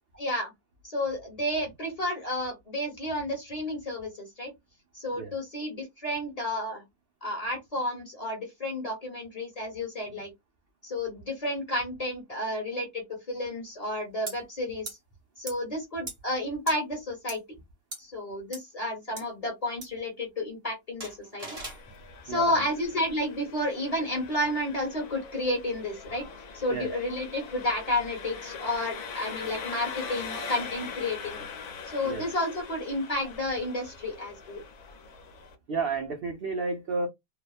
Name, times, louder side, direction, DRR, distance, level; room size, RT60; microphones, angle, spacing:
voice 1, 0.1-0.5 0.8-4.5 4.9-6.8 7.2-10.3 10.8-15.0 15.4-17.4 18.0-21.6 22.2-26.2 26.5-31.4 31.8-34.6, left 1 dB, 25° left, 1.0 m, -31 dB
sound 1, 14.3-14.4 14.8-14.9 15.5-15.6 16.1-16.2 16.7-16.8 17.3-17.4 17.9-18.0 18.5-18.6 19.2-19.3 19.8-19.9 21.0-21.8, right 2 dB, 30° right, 0.7 m, -38 dB
Engine, 21.5-35.6, left 5 dB, 65° left, 1.1 m, -42 dB
voice 2, 22.2-22.6 26.7-26.9 32.0-32.2 35.7-37.1, right 4 dB, 75° right, 0.5 m, -31 dB
2.8 x 2.1 x 2.3 m
omnidirectional pair, 1.7 m